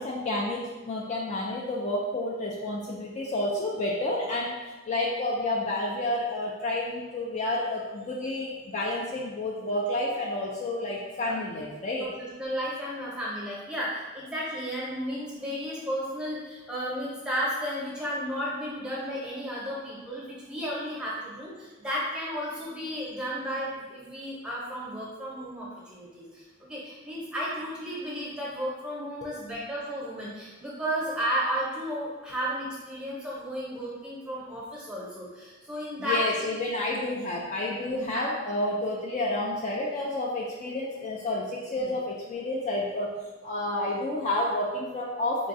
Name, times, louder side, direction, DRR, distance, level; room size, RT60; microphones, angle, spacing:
voice 1, 0.0-4.5 4.9-12.1 36.0-43.1 43.4-45.5, left 1 dB, 35° left, -3 dB, 0.3 m, -30 dB
voice 2, 12.0-36.5 37.9-38.3 41.8-41.9, equal, 5° right, -6 dB, 0.8 m, -33 dB
3.9 x 2.3 x 2.6 m, 1.3 s
head